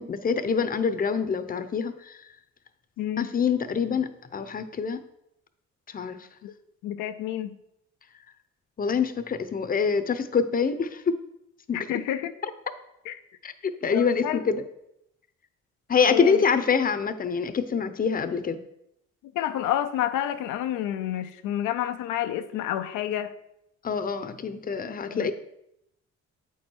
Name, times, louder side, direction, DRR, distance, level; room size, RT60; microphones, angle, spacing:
voice 1, 0.0-2.2 3.2-5.0 5.9-6.2 8.8-11.2 11.7-11.8 13.4-14.6 15.9-18.6 23.8-25.3, left 6 dB, 30° left, 9 dB, 0.7 m, -25 dB
voice 2, 3.0-3.3 6.4-6.5 6.8-7.6 11.7-12.3 13.1-13.2 13.9-14.4 16.1-16.4 19.3-23.3 25.1-25.3, left 11 dB, 90° left, 9 dB, 0.5 m, -29 dB
8.4 x 4.7 x 4.4 m, 0.81 s
cardioid pair, 90°, 30 cm